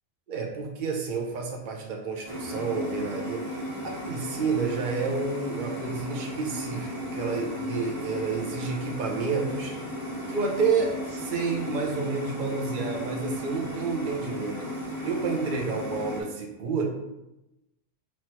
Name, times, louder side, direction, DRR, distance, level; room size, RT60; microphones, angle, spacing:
voice 1, 0.3-9.7 10.3-14.6 15.0-16.8, right 4 dB, 45° right, 1 dB, 0.7 m, -30 dB
sound 1, 2.2-16.2, left 1 dB, 20° right, 1.3 m, -35 dB
3.1 x 3.0 x 4.4 m, 0.92 s
omnidirectional pair, 1.4 m